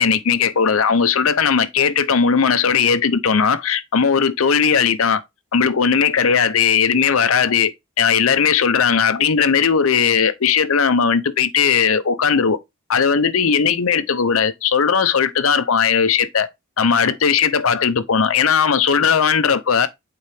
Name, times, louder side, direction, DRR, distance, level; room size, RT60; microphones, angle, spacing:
voice 1, 0.0-5.2 5.5-12.6 12.9-16.5 16.8-19.9, left 6 dB, 75° left, 0.7 m, -17 dB
8.2 x 4.3 x 3.4 m
head